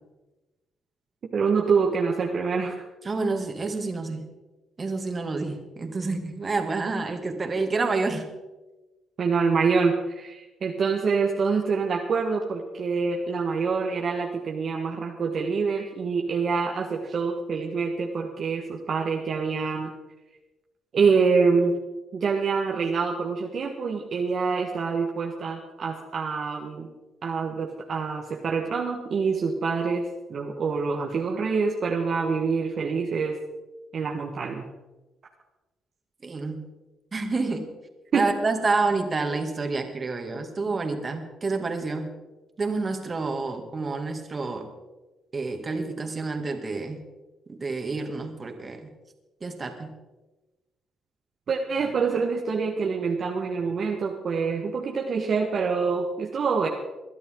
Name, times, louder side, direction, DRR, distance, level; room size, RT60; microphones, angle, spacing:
voice 1, 1.3-2.8 9.2-19.9 20.9-21.8 22.1-26.9 27.2-33.4 33.9-34.6 38.1-38.3 51.5-56.7, right 5 dB, 55° right, 1 dB, 1.5 m, -26 dB
voice 2, 3.0-4.3 4.8-8.3 36.2-36.7 37.1-37.7 38.1-42.1 42.6-44.7 45.3-47.0 47.5-48.9 49.4-50.0, right 3 dB, 35° right, 4 dB, 2.4 m, -28 dB
21.5 x 11.5 x 3.9 m, 1.1 s
cardioid pair, 90°, 0 cm